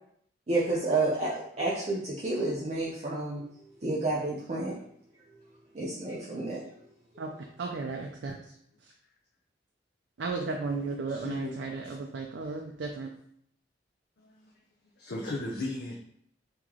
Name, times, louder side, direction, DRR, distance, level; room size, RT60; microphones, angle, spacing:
voice 1, 0.5-3.4 3.8-4.8 5.7-6.7, right 2 dB, 40° right, -6 dB, 0.6 m, -30 dB
voice 2, 7.2-8.4 10.2-13.1, right 3 dB, 80° right, 2 dB, 0.4 m, -34 dB
voice 3, 11.1-11.5 14.2-14.5 15.0-15.9, left 2 dB, 60° left, -2 dB, 0.5 m, -36 dB
3.1 x 3.0 x 3.7 m, 0.68 s
head